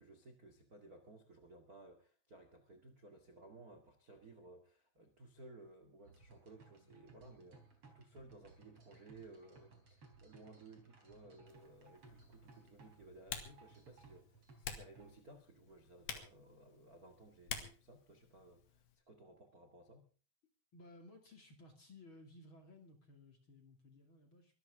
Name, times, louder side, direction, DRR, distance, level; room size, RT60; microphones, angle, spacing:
voice 1, 0.0-20.1, right 2 dB, 50° right, 6 dB, 1.0 m, -58 dB
sound 1, 6.0-15.1, right 3 dB, 35° right, 4.6 m, -62 dB
Typing, 11.5-19.0, left 8 dB, 70° left, 3.9 m, -51 dB
voice 2, 20.7-24.6, left 2 dB, 35° left, 4 dB, 2.3 m, -59 dB
24.0 x 13.5 x 3.6 m, 0.37 s
omnidirectional pair, 5.2 m